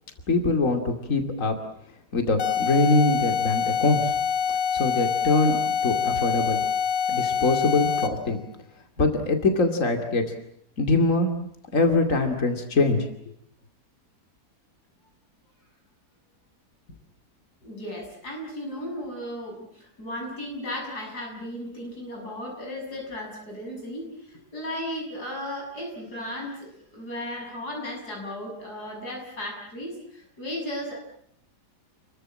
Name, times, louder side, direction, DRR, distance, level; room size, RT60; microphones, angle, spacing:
voice 1, 0.3-1.6 2.1-4.1 4.7-5.6 5.8-6.6 7.1-8.4 9.0-10.2 10.8-11.3 11.7-13.1, left 3 dB, 50° left, 5 dB, 2.9 m, -23 dB
sound 1, 2.4-8.3, left 7 dB, 90° left, 2.5 m, -25 dB
voice 2, 17.6-31.0, left 1 dB, 65° left, 0 dB, 7.2 m, -35 dB
30.0 x 22.5 x 7.6 m, 0.72 s
omnidirectional pair, 1.8 m